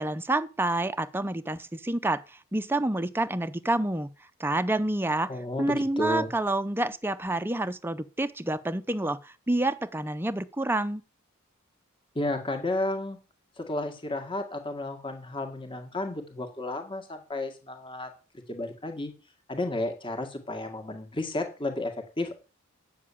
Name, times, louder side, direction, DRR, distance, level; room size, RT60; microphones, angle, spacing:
voice 1, 0.0-2.2 2.5-4.1 4.4-5.3 5.6-11.0, right 2 dB, 10° right, 0.5 m, -28 dB
voice 2, 5.3-6.3 12.2-13.2 13.6-18.1 18.5-19.1 19.5-22.4, left 1 dB, 25° left, 1.9 m, -32 dB
8.6 x 7.2 x 8.5 m
head